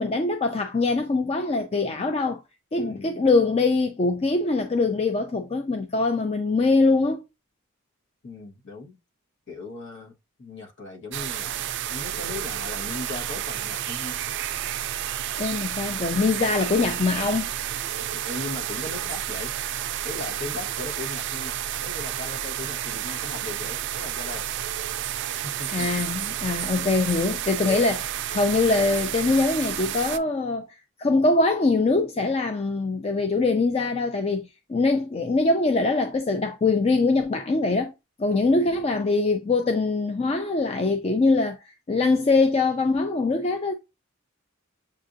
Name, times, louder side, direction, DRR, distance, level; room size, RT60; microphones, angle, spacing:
voice 1, 0.0-2.4 2.7-7.2 15.4-17.5 25.7-30.7 31.0-37.9 38.2-41.6 41.9-43.7, left 3 dB, 30° left, 0.4 m, -23 dB
voice 2, 2.8-3.3 8.2-9.0 9.5-14.2 18.0-19.5 20.0-24.5 25.4-25.9 27.6-27.9 38.3-38.7, left 3 dB, 60° left, 1.2 m, -38 dB
sound 1, 11.1-30.2, right 11 dB, 55° right, 0.3 m, -31 dB
7.3 x 2.6 x 2.6 m
head